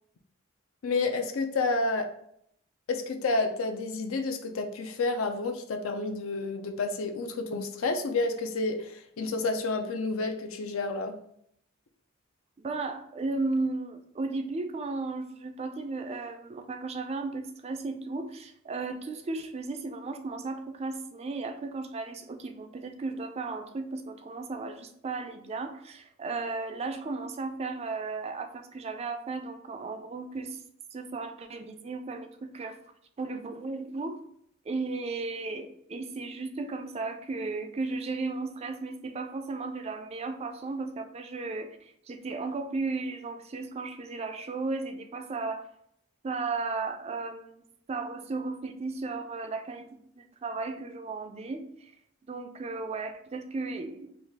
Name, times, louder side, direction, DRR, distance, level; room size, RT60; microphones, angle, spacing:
voice 1, 0.8-2.1 2.9-11.2, left 3 dB, 75° left, 5 dB, 0.5 m, -30 dB
voice 2, 12.6-30.6 30.9-32.7 33.2-34.2 34.7-45.7 46.2-47.6 47.9-49.9 50.1-51.9 52.3-54.1, right 3 dB, 30° right, 7 dB, 0.3 m, -35 dB
4.0 x 2.3 x 3.4 m, 0.70 s
head